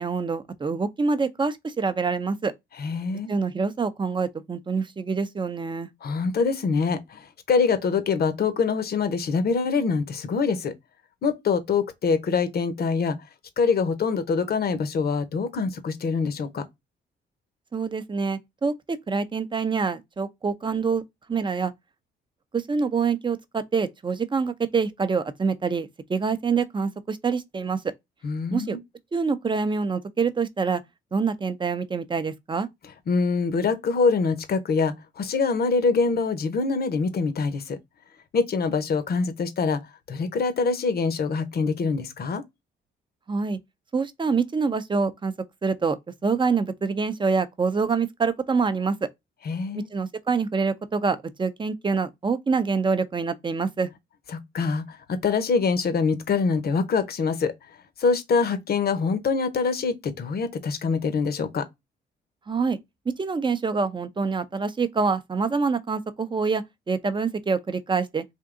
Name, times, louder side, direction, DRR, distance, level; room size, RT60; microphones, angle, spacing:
voice 1, 0.0-2.5 3.3-5.9 17.7-21.0 21.3-21.7 22.5-27.8 28.5-28.8 29.1-30.8 31.1-32.7 43.3-43.6 43.9-45.3 45.6-46.0 46.2-48.9 49.9-53.9 62.5-62.8 63.1-68.2, right 5 dB, 25° right, 0.6 m, -26 dB
voice 2, 2.8-3.3 6.0-10.7 11.2-13.2 13.6-16.6 28.2-28.8 33.1-37.8 38.3-39.8 40.1-42.4 49.4-49.9 54.5-57.5 58.0-61.7, left 5 dB, 50° left, 0.9 m, -24 dB
3.6 x 2.6 x 3.7 m
cardioid pair, 90°, 20 cm